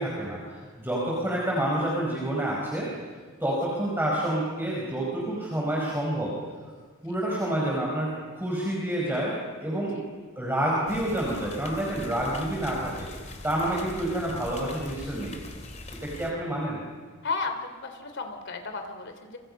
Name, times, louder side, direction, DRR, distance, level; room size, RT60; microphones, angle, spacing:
voice 1, 0.0-2.9 3.4-6.4 7.0-10.0 10.4-13.1 13.4-15.4 16.0-16.8, right 1 dB, 10° right, -4 dB, 5.1 m, -28 dB
sound 1, 10.9-16.3, left 2 dB, 35° left, 2.7 m, -42 dB
voice 2, 17.2-19.4, left 4 dB, 60° left, 6 dB, 3.2 m, -34 dB
30.0 x 27.5 x 5.6 m, 1.5 s
head